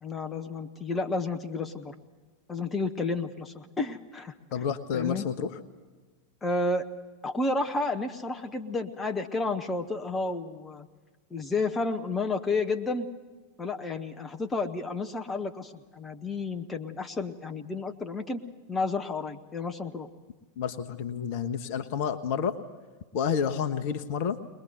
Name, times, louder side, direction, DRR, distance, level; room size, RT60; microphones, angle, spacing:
voice 1, 0.0-1.9 2.5-4.3 4.9-5.3 6.4-6.9 7.2-10.9 11.3-13.1 13.6-18.4 18.7-20.1, left 3 dB, 15° left, 5 dB, 1.1 m, -31 dB
voice 2, 4.5-5.5 20.6-22.6 23.1-24.4, left 7 dB, 45° left, 10 dB, 1.2 m, -29 dB
22.0 x 21.0 x 8.1 m, 1.3 s
figure-of-eight pair, 90°, 0 cm